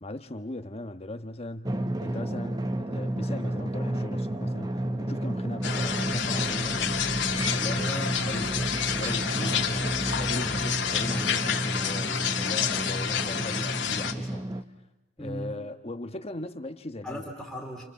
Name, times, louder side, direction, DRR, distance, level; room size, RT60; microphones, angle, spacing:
voice 1, 0.0-8.5 9.0-14.4 15.2-17.3, left 1 dB, 35° left, 1.4 m, -39 dB
Drum, 1.7-14.6, right 1 dB, 20° right, 1.2 m, -31 dB
sound 1, 5.6-14.1, left 7 dB, 75° left, 2.4 m, -29 dB
sound 2, 6.9-8.0 8.5-9.9 10.2-10.3 11.4-11.5, equal, 85° right, 7.5 m, -43 dB
voice 2, 7.7-9.0 9.3-9.8 10.4-10.8 15.2-15.6 17.0-17.8, right 1 dB, ahead, 3.4 m, -39 dB
29.0 x 28.5 x 7.0 m
head